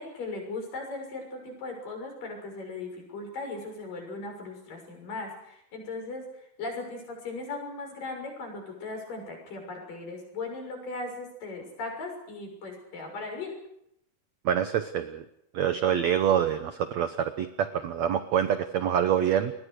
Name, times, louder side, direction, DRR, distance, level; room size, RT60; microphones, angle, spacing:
voice 1, 0.0-6.2 6.6-13.5, left 3 dB, 55° left, 3 dB, 8.0 m, -38 dB
voice 2, 14.4-15.2 15.5-19.5, right 9 dB, 80° right, 10 dB, 1.6 m, -26 dB
28.5 x 21.5 x 6.6 m, 0.78 s
omnidirectional pair, 4.6 m